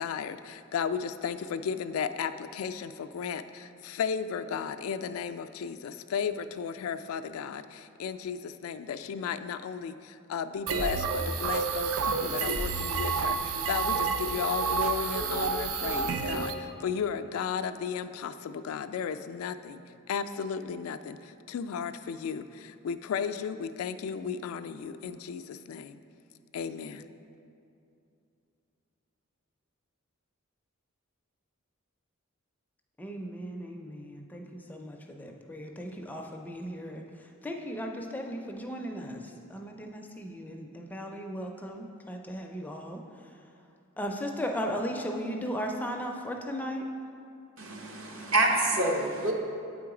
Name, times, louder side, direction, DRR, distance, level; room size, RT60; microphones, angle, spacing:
voice 1, 0.0-19.8 20.1-26.0 26.5-27.0, left 7 dB, 80° left, 11 dB, 0.3 m, -34 dB
sound 1, 10.7-16.5, right 5 dB, 85° right, 0.5 m, -29 dB
voice 2, 33.0-34.4 34.7-37.0 37.4-39.2 39.5-43.0 44.0-46.8, equal, 10° left, 2 dB, 0.4 m, -36 dB
voice 3, 47.6-49.3, right 2 dB, 70° right, 0 dB, 0.9 m, -27 dB
8.3 x 3.9 x 4.8 m, 2.6 s
head